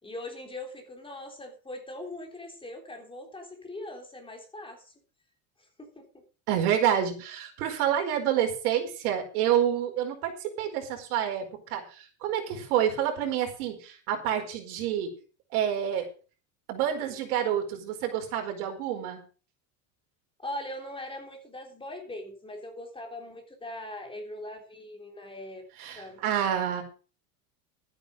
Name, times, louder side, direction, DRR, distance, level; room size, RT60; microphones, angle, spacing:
voice 1, 0.0-4.9 5.6-6.2 20.4-26.2, left 1 dB, 10° left, 3 dB, 3.6 m, -41 dB
voice 2, 6.5-15.1 15.5-16.1 16.7-19.2 25.8-26.8, right 10 dB, 75° right, 4 dB, 4.9 m, -28 dB
13.0 x 9.9 x 5.1 m, 0.36 s
supercardioid pair, 140°, 45 cm